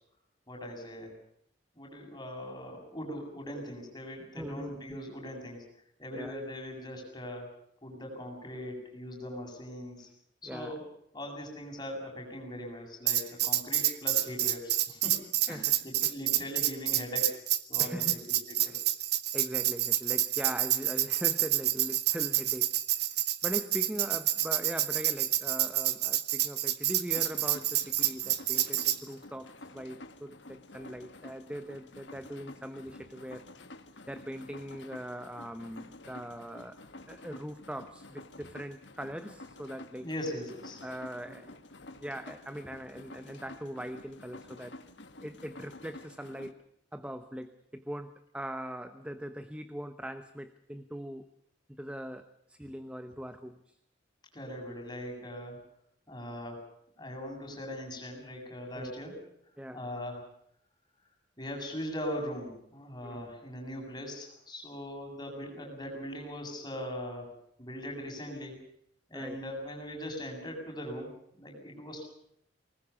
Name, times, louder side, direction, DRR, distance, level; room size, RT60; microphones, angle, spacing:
voice 1, 0.5-1.1 1.7-5.6 6.0-7.5 7.8-10.1 10.4-10.8 11.1-17.4 17.7-18.8 39.9-40.8 41.2-41.4 54.3-55.6 56.1-56.6 57.0-59.2 59.7-60.2 61.4-67.3 67.6-68.6 69.1-72.1, equal, 25° left, 1 dB, 7.6 m, -40 dB
voice 2, 4.3-5.1 6.1-6.4 10.4-10.8 15.5-15.7 16.0-16.1 17.8-18.2 18.7-18.8 19.3-33.5 34.1-40.1 40.8-41.6 42.0-44.8 45.2-46.6 46.9-51.3 51.8-53.8 58.7-59.0 59.6-59.8 63.0-63.3 69.1-69.4, equal, 5° right, 9 dB, 1.0 m, -41 dB
Tambourine, 13.1-29.0, right 14 dB, 60° right, 1.4 m, -28 dB
sound 1, 27.1-46.5, left 2 dB, 70° left, 1.8 m, -50 dB
24.5 x 20.5 x 7.1 m, 0.71 s
head